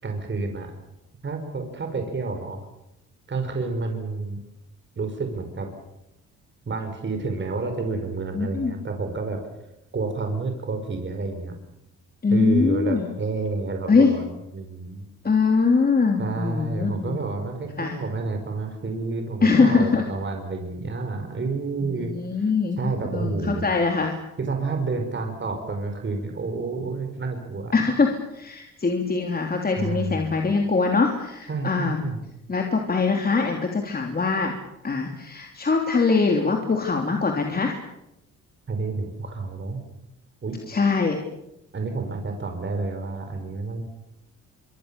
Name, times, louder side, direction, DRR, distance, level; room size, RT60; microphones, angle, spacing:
voice 1, 0.0-0.7 1.2-2.6 3.3-4.4 4.9-5.7 6.6-9.4 9.9-11.5 12.3-15.0 16.2-22.5 22.8-23.6 24.4-27.7 29.8-30.4 31.5-32.2 38.7-39.8 40.4-40.5 41.7-43.8, right 3 dB, 40° right, 5 dB, 5.1 m, -29 dB
voice 2, 8.3-8.7 12.2-13.1 13.9-14.1 15.2-17.2 17.8-18.0 19.4-20.0 21.8-24.1 27.7-32.0 32.5-34.6 34.8-37.7 40.7-41.2, left 4 dB, 30° left, 2 dB, 3.3 m, -22 dB
25.0 x 25.0 x 7.0 m, 0.87 s
cardioid pair, 90°, 30 cm